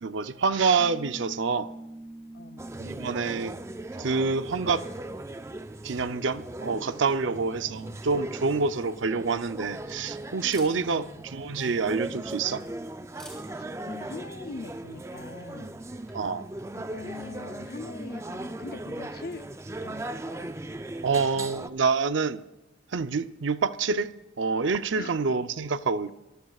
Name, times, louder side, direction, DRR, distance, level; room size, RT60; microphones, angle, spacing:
voice 1, 0.0-1.7 2.8-3.6 4.0-4.8 5.8-12.6 16.1-16.5 21.0-22.4 22.9-26.1, right 4 dB, 75° right, 0.6 m, -27 dB
sound 1, 0.8-7.7, right 1 dB, 35° right, 2.0 m, -47 dB
voice 2, 2.3-2.7 7.2-8.0 10.7-11.3 13.5-15.7 16.7-19.5 19.8-20.5 25.0-25.2, left 4 dB, 50° left, 0.6 m, -43 dB
sound 2, 2.6-21.7, right 2 dB, 15° right, 0.4 m, -39 dB
Camera, 8.1-16.5, left 1 dB, 5° left, 3.3 m, -57 dB
25.0 x 15.0 x 2.4 m
head